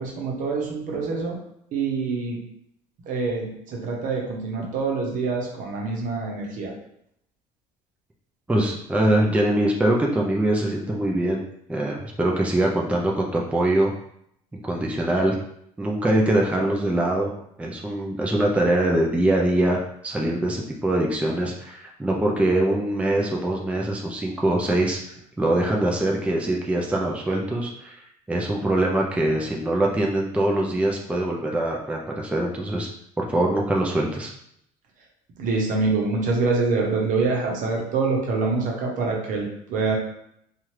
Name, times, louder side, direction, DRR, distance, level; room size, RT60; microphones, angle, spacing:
voice 1, 0.0-1.4 1.7-2.4 3.1-6.7 35.4-40.0, right 4 dB, 60° right, 0 dB, 0.9 m, -25 dB
voice 2, 8.5-11.4 11.7-13.9 14.6-15.3 15.8-17.3 17.6-25.0 25.4-27.9 28.3-32.9 33.2-34.3, right 1 dB, 10° right, -1 dB, 0.5 m, -23 dB
2.7 x 2.4 x 3.1 m, 0.72 s
supercardioid pair, 90°, 15 cm